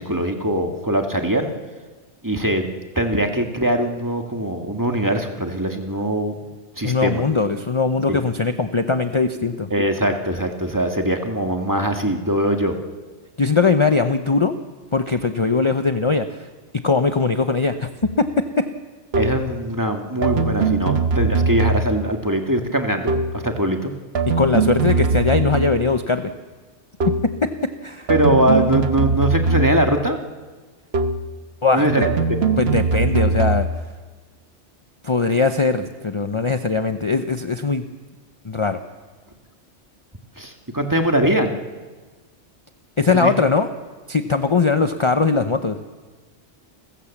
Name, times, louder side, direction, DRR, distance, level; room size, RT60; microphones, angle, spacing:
voice 1, 0.0-1.5 2.2-6.3 6.8-7.2 8.1-8.2 9.7-12.7 19.1-23.9 28.1-30.2 31.7-32.1 40.4-41.6 43.1-43.3, right 1 dB, 15° right, 4 dB, 1.8 m, -21 dB
voice 2, 6.8-9.7 13.4-14.6 14.9-16.3 16.7-18.7 24.4-26.3 27.1-28.1 31.6-32.1 32.6-33.7 35.0-37.9 38.4-38.8 43.0-43.7 44.1-45.8, left 4 dB, 30° left, 8 dB, 0.8 m, -20 dB
sound 1, 18.0-18.2 19.1-19.5 20.2-22.1 23.1-23.5 24.1-25.9 27.0-27.4 28.1-30.0 30.9-31.4 32.0-33.8, right 4 dB, 65° right, 1.3 m, -21 dB
29.0 x 15.5 x 7.3 m, 1.4 s
omnidirectional pair, 1.2 m